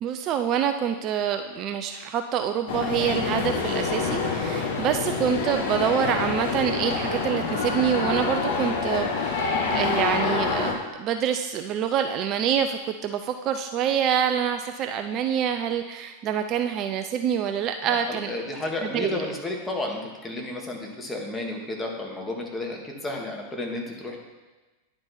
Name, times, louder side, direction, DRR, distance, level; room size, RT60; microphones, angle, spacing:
voice 1, 0.0-18.3 18.8-19.3, right 8 dB, 35° right, 7 dB, 0.4 m, -26 dB
sound 1, 2.7-10.7, left 4 dB, 55° left, 1.1 m, -27 dB
voice 2, 17.9-24.2, left 2 dB, 10° left, 0 dB, 1.4 m, -32 dB
10.0 x 4.4 x 4.2 m, 1.2 s
figure-of-eight pair, 90°, 0 cm